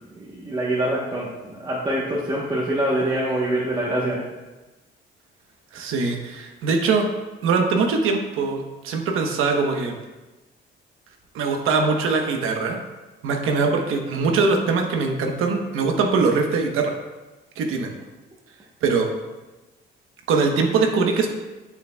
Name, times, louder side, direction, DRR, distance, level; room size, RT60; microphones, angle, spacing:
voice 1, 0.3-4.2, right 1 dB, 20° right, -6 dB, 1.0 m, -24 dB
voice 2, 5.7-7.1 7.4-10.0 11.3-12.8 13.2-16.9 17.6-17.9 18.8-19.1 20.3-21.3, right 4 dB, 85° right, 3 dB, 1.0 m, -22 dB
8.6 x 7.0 x 2.2 m, 1.2 s
cardioid pair, 150°, 21 cm